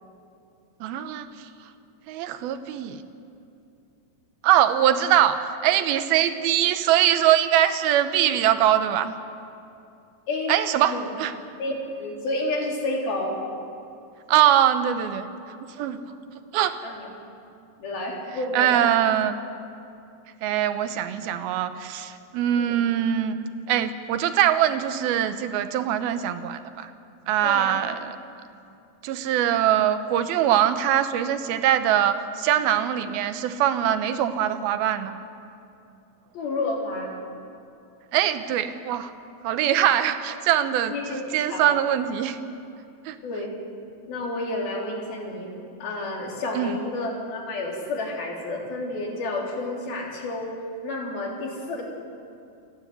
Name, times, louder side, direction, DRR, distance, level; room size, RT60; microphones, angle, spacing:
voice 1, 0.8-1.5 2.1-3.0 4.4-5.4 5.6-9.1 10.5-11.3 14.3-16.0 16.5-16.8 18.5-19.4 20.4-23.4 23.7-26.9 27.3-28.2 29.0-35.2 38.1-39.1 39.4-42.4 43.0-43.2 46.5-46.8, right 11 dB, 85° right, 10 dB, 2.9 m, -22 dB
voice 2, 11.6-13.4 16.8-17.1 17.8-18.9 22.6-22.7 27.4-27.8 36.3-37.2 40.9-41.2 41.5-41.7 43.2-43.5 44.1-45.5 45.8-50.5 50.8-51.8, left 2 dB, 80° left, -2 dB, 5.3 m, -30 dB
28.5 x 12.0 x 9.5 m, 2.6 s
omnidirectional pair, 4.2 m